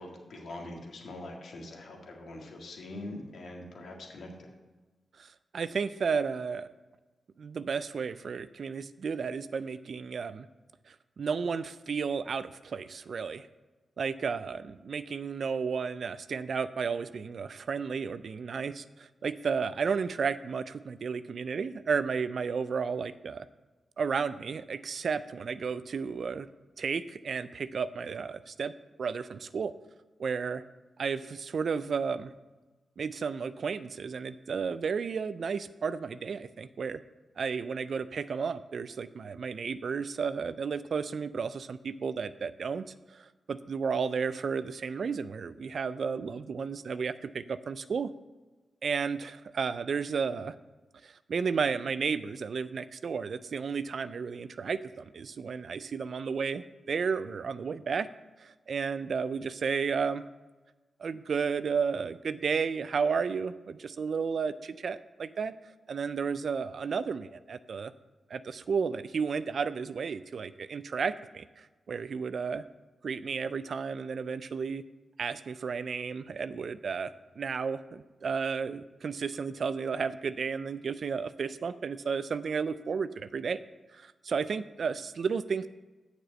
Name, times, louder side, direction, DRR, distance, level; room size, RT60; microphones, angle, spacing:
voice 1, 0.0-4.5, left 2 dB, 70° left, 1 dB, 1.9 m, -43 dB
voice 2, 5.2-6.7 7.4-10.5 10.9-13.5 14.0-23.5 24.0-26.5 26.8-28.7 29.0-29.7 30.2-30.6 31.0-32.3 33.0-37.0 37.4-42.8 43.1-48.1 48.8-50.5 51.0-58.1 58.4-60.2 61.0-65.5 65.9-67.9 68.3-72.6 73.0-74.8 75.2-83.6 83.9-85.7, right 5 dB, 65° right, 14 dB, 0.4 m, -33 dB
6.8 x 6.1 x 7.5 m, 1.2 s
supercardioid pair, 45°, 0 cm